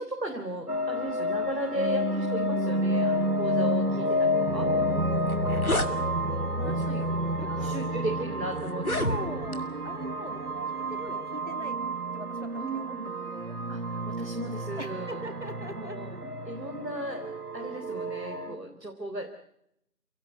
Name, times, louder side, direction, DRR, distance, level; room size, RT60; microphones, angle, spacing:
voice 1, 0.0-4.7 6.3-7.0 7.4-9.4 12.6-13.1 13.7-15.2 15.7-16.1 16.4-19.3, right 1 dB, 80° right, 4 dB, 3.8 m, -36 dB
sound 1, 0.7-18.6, equal, 65° right, 1.8 m, -30 dB
voice 2, 4.5-7.8 9.0-11.8 12.1-13.6 14.8-16.2 18.4-18.6, equal, 45° right, 9 dB, 2.4 m, -43 dB
sound 2, 4.8-4.9 5.2-5.9 6.8-7.0 7.7-7.8 8.7-9.6, left 1 dB, 60° left, 2.3 m, -30 dB
29.0 x 18.0 x 8.2 m, 0.78 s
figure-of-eight pair, 180°, 49 cm